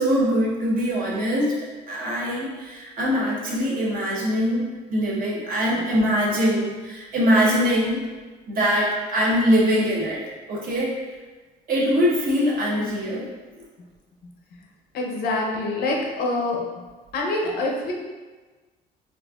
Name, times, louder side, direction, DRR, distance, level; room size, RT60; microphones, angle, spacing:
voice 1, 0.0-8.0 8.5-11.0 11.7-13.3, equal, 55° right, -5 dB, 1.0 m, -23 dB
voice 2, 14.9-16.6 17.1-17.9, left 2 dB, 65° left, -1 dB, 0.7 m, -25 dB
4.2 x 2.5 x 2.4 m, 1.3 s
cardioid pair, 110°, 17 cm